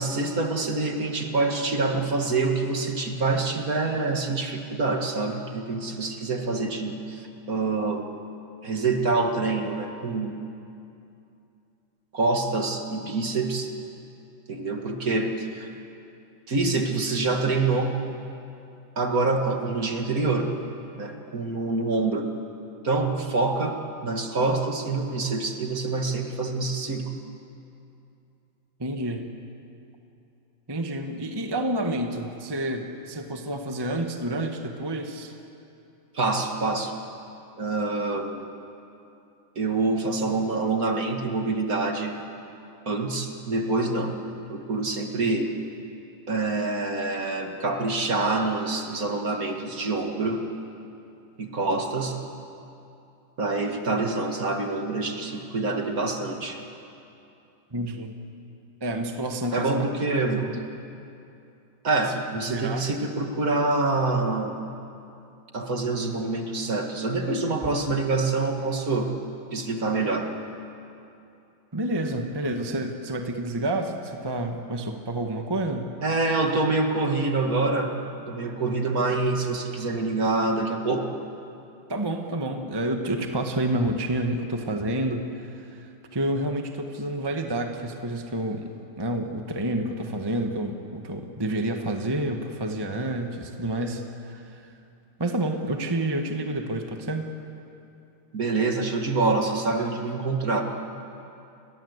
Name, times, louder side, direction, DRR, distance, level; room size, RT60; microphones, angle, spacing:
voice 1, 0.0-8.1 8.6-10.4 12.1-13.7 14.5-15.7 16.5-17.9 19.0-20.5 21.0-22.3 22.8-23.8 24.0-27.1 36.1-36.9 37.6-38.4 39.6-42.2 42.9-44.1 44.5-45.5 46.3-50.5 51.4-52.2 53.4-56.6 59.5-60.4 61.8-64.6 65.5-69.1 69.5-70.3 76.0-78.0 78.3-81.1 98.3-100.6, right 3 dB, 45° right, 3 dB, 2.3 m, -26 dB
voice 2, 28.8-29.3 30.7-35.3 57.7-58.1 58.8-59.9 60.2-60.6 62.4-62.9 71.7-75.9 81.9-94.7 95.2-97.3, right 1 dB, 15° right, 4 dB, 1.3 m, -29 dB
29.5 x 22.0 x 8.1 m, 2.7 s
omnidirectional pair, 2.3 m